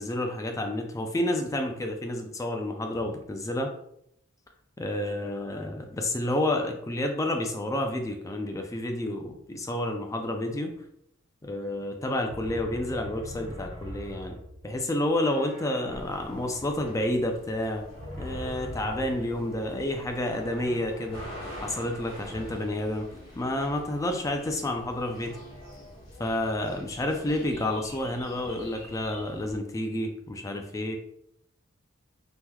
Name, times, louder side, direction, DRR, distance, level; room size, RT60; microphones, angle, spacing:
voice 1, 0.0-3.7 4.8-10.7 11.4-14.4 14.6-17.8 18.2-21.2 21.6-23.1 23.4-25.4 26.2-31.0, left 1 dB, 15° left, 4 dB, 0.3 m, -30 dB
sound 1, 12.3-14.9 15.2-19.5 19.8-19.9 20.3-22.4, left 1 dB, 40° right, 1.4 m, -43 dB
sound 2, 15.9-29.6, equal, 75° left, 1.0 m, -45 dB
3.5 x 2.9 x 2.2 m, 0.74 s
head